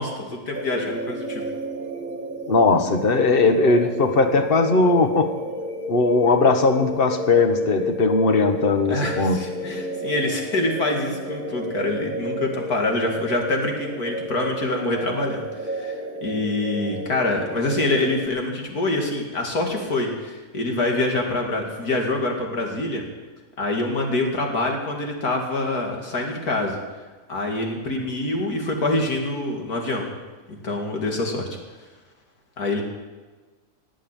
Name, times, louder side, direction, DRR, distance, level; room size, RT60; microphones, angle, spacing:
voice 1, 0.0-1.4 8.9-23.0 23.6-26.8 27.3-30.1 30.6-31.5 32.6-32.8, left 2 dB, 80° left, 1 dB, 3.0 m, -25 dB
sound 1, 0.5-18.3, equal, 30° right, 1.7 m, -32 dB
voice 2, 2.5-5.3 5.9-9.4, left 3 dB, 40° left, 7 dB, 1.4 m, -19 dB
18.0 x 7.7 x 9.1 m, 1.3 s
omnidirectional pair, 1.6 m